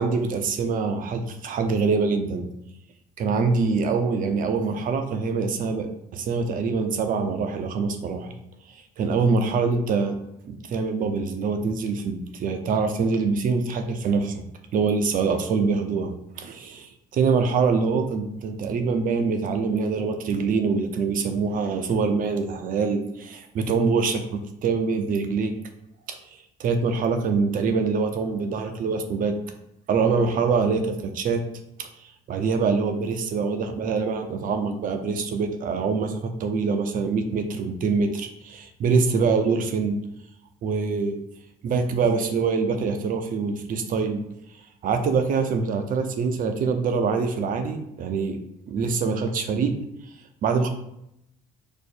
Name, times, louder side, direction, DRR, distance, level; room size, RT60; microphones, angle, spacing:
voice 1, 0.0-2.5 3.2-5.9 6.1-8.3 9.0-10.1 10.4-14.4 14.7-25.5 26.6-29.3 29.9-31.4 31.8-31.9 32.3-40.0 40.6-41.2 41.6-44.2 44.8-48.4 48.7-49.8 50.4-50.7, right 4 dB, 55° right, 6 dB, 0.6 m, -24 dB
5.0 x 2.0 x 4.3 m, 0.81 s
cardioid pair, 110°, 17 cm